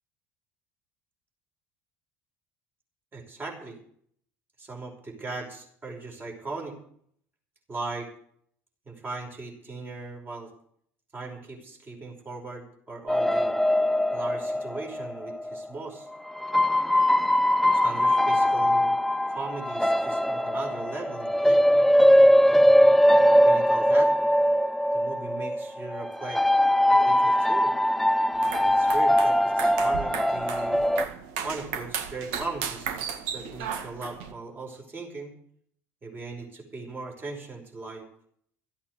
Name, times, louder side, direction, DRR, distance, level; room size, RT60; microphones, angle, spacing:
voice 1, 3.1-3.8 4.6-6.8 7.7-8.1 8.9-10.5 11.1-13.5 14.1-16.1 17.7-19.0 19.3-21.6 23.2-24.1 24.9-26.4 26.9-27.7 28.6-30.8 31.4-35.3 36.0-38.1, right 3 dB, 25° right, 2 dB, 5.2 m, -38 dB
sound 1, 13.1-15.6 16.4-31.1, equal, 5° left, 0.5 m, -21 dB
sound 2, 28.3-34.3, right 7 dB, 65° right, 1.8 m, -35 dB
14.5 x 8.7 x 8.0 m, 0.63 s
figure-of-eight pair, 65°, 8 cm